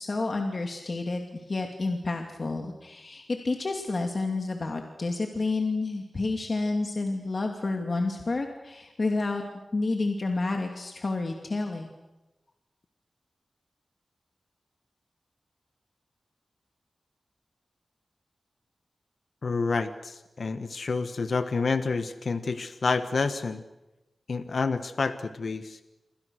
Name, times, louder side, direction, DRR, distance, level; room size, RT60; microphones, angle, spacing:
voice 1, 0.0-9.4 9.7-11.9, left 3 dB, 50° left, 3 dB, 2.6 m, -30 dB
voice 2, 19.4-23.6 24.3-25.8, left 4 dB, 65° left, 10 dB, 1.2 m, -29 dB
27.5 x 25.0 x 6.5 m, 1.0 s
wide cardioid pair, 75°, 0 cm